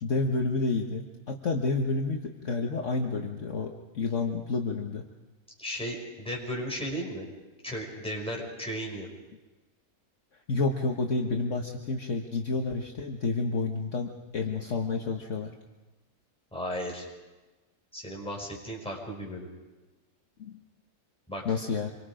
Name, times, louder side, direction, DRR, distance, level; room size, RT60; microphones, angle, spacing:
voice 1, 0.0-5.1 10.5-15.5 20.4-20.6 21.4-21.9, left 3 dB, 50° left, 1 dB, 1.6 m, -30 dB
voice 2, 5.6-7.3 7.6-9.1 16.5-17.1 17.9-19.5 21.3-21.4, equal, 5° left, -2 dB, 5.9 m, -35 dB
27.0 x 24.0 x 5.1 m, 1.2 s
omnidirectional pair, 1.6 m